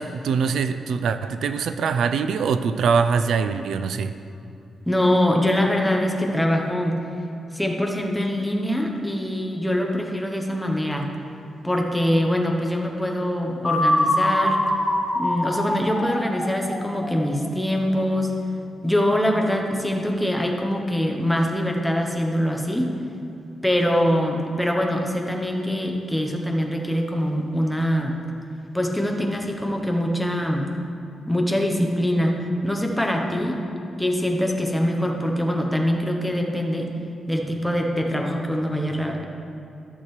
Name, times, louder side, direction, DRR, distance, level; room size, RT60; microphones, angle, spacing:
voice 1, 0.0-4.1, right 5 dB, 75° right, 10 dB, 0.3 m, -23 dB
voice 2, 4.9-7.0 7.5-11.1 11.6-14.6 15.1-18.3 18.8-22.9 23.6-28.2 28.7-30.7 31.3-32.3 32.6-33.6 34.0-36.9 37.3-39.2, equal, 5° left, 1 dB, 0.7 m, -23 dB
sound 1, 13.6-17.5, left 1 dB, 20° left, 1.1 m, -24 dB
13.5 x 6.6 x 3.1 m, 2.7 s
wide cardioid pair, 175°, 0 cm